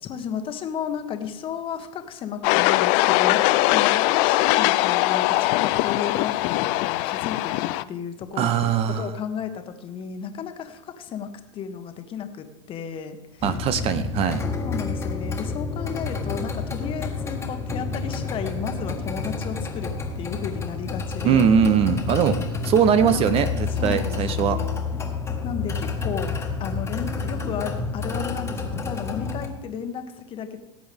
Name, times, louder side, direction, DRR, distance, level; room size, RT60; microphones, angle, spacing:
voice 1, 0.0-8.7 9.0-13.6 14.6-21.6 22.2-22.6 23.1-24.8 25.4-30.6, left 7 dB, 35° left, 7 dB, 1.3 m, -33 dB
sound 1, 2.4-7.8, left 18 dB, 50° left, 0.4 m, -21 dB
voice 2, 8.4-9.1 13.4-14.4 21.2-22.4 22.7-24.6, right 7 dB, 35° right, 11 dB, 0.8 m, -21 dB
sound 2, 13.4-29.5, left 4 dB, 15° left, 1.6 m, -29 dB
18.0 x 7.9 x 3.5 m, 0.91 s
hypercardioid pair, 105°, 16 cm